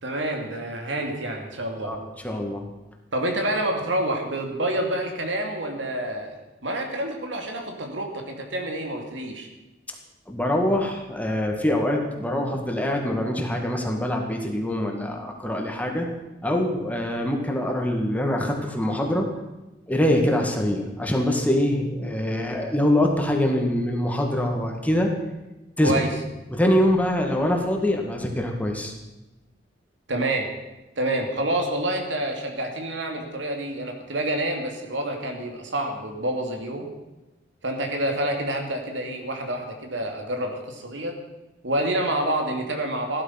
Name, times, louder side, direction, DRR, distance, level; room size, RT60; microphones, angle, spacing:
voice 1, 0.0-2.0 3.1-9.5 25.8-26.1 30.1-30.5 31.0-36.9 37.6-41.2 41.6-43.2, right 1 dB, 75° right, 3 dB, 2.7 m, -28 dB
voice 2, 2.2-2.7 10.3-16.1 16.4-19.3 19.9-25.1 25.8-25.9 26.5-28.9, left 1 dB, 10° left, 2 dB, 2.0 m, -24 dB
15.5 x 12.5 x 5.9 m, 1.1 s
head